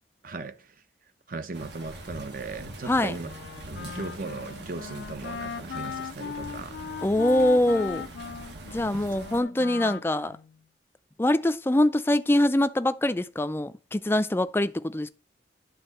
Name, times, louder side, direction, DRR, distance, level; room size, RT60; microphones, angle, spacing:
voice 1, 0.2-0.8 1.3-3.3 3.6-6.8 8.9-9.1, right 3 dB, 50° right, 0.8 m, -38 dB
sound 1, 1.5-9.4, right 1 dB, 75° right, 1.5 m, -43 dB
voice 2, 2.9-3.2 7.0-8.1 8.7-10.4 11.2-15.1, left 1 dB, 15° left, 0.4 m, -24 dB
Wind instrument woodwind instrument, 3.2-10.6, left 6 dB, 80° left, 0.4 m, -38 dB
11.0 x 3.7 x 6.5 m
head